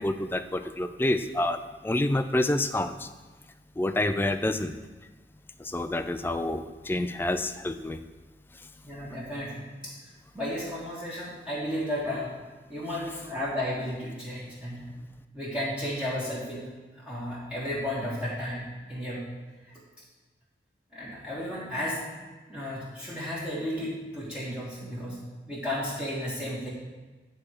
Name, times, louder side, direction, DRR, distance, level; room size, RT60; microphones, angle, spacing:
voice 1, 0.0-1.6 1.8-3.1 3.8-4.7 5.6-8.0, left 1 dB, 10° left, 10 dB, 0.3 m, -28 dB
voice 2, 8.8-10.0 10.3-12.3 12.7-14.9 15.3-16.7 16.9-19.2 19.7-19.8 20.9-22.0 22.5-25.2 25.5-26.7, left 1 dB, 5° right, -8 dB, 1.5 m, -33 dB
9.6 x 4.3 x 6.4 m, 1.3 s
head